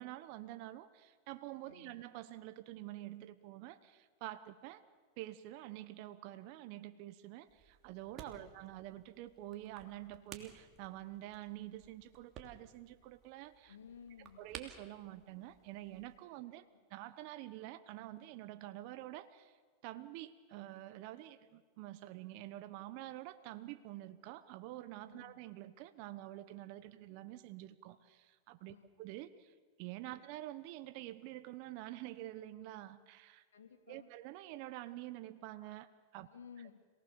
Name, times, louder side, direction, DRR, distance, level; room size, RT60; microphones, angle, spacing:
voice 1, 0.0-4.8 5.2-13.7 14.4-16.6 16.9-19.6 19.8-33.4 33.9-36.3, right 15 dB, 55° right, 11 dB, 1.2 m, -48 dB
voice 2, 1.6-2.0 8.3-8.5 13.7-14.5 16.3-16.8 25.1-25.4 26.8-26.9 28.7-28.9 30.1-30.2 33.5-34.1 36.2-36.7, left 7 dB, 85° left, 3 dB, 2.9 m, -56 dB
sound 1, 7.5-16.2, right 8 dB, 40° right, 3.0 m, -56 dB
27.0 x 19.0 x 7.1 m, 1.5 s
hypercardioid pair, 110°, 0 cm